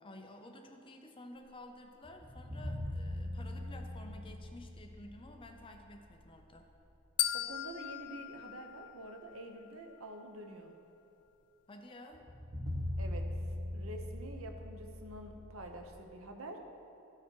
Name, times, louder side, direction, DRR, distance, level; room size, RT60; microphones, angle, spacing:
voice 1, 0.0-6.7 11.7-12.2, left 1 dB, 25° left, 4 dB, 0.6 m, -52 dB
sound 1, 2.0-6.7 7.0-7.1 12.1-16.0, left 1 dB, 20° right, 1.1 m, -41 dB
sound 2, 7.2-9.4, left 14 dB, 90° left, 0.4 m, -37 dB
voice 2, 7.3-10.7 13.0-13.3 13.7-16.6, right 1 dB, 65° right, 4 dB, 0.9 m, -47 dB
14.0 x 4.9 x 4.6 m, 2.8 s
head